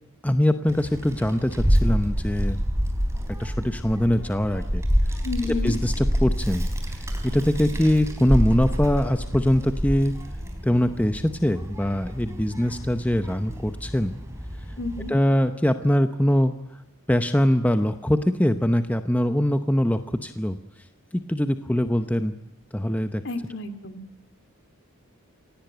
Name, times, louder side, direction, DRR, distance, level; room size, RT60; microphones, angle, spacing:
voice 1, 0.2-2.6 3.4-4.8 5.4-6.7 7.2-10.1 10.6-14.1 15.1-16.5 17.1-20.6 21.1-22.3 22.7-23.2, equal, 5° left, 8 dB, 0.8 m, -22 dB
Child speech kid speaking, 0.7-15.1, equal, 15° right, 3.9 m, -28 dB
voice 2, 5.2-5.8 14.8-15.1 23.2-24.0, left 3 dB, 55° left, 9 dB, 2.4 m, -30 dB
27.5 x 17.5 x 9.1 m, 0.91 s
head